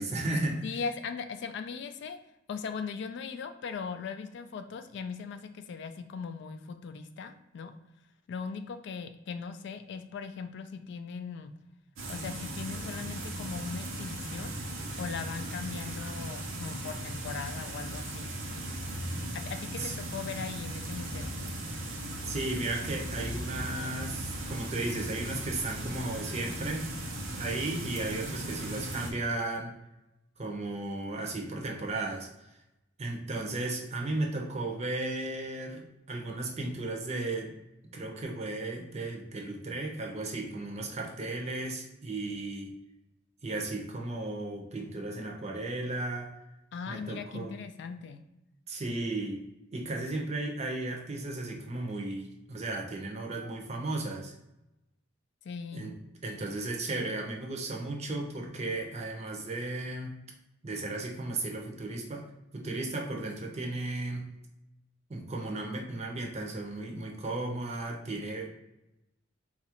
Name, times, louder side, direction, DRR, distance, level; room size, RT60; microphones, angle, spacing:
voice 1, 0.0-0.8 19.8-19.9 22.2-26.9 27.4-29.8 30.4-32.3 33.0-37.5 37.9-42.7 43.4-46.3 46.9-47.6 48.7-54.3 55.7-56.0 56.2-60.1 60.6-62.3 62.5-64.3 65.1-68.5, right 2 dB, 35° right, 1 dB, 0.6 m, -35 dB
voice 2, 0.6-2.2 2.5-7.7 8.3-11.5 12.1-14.5 15.0-18.3 19.3-21.3 46.7-48.2 53.4-53.6 55.4-55.9, left 5 dB, 60° left, 8 dB, 0.3 m, -39 dB
sound 1, 12.0-29.1, right 1 dB, 85° right, 0.7 m, -37 dB
4.0 x 2.4 x 2.8 m, 0.90 s
head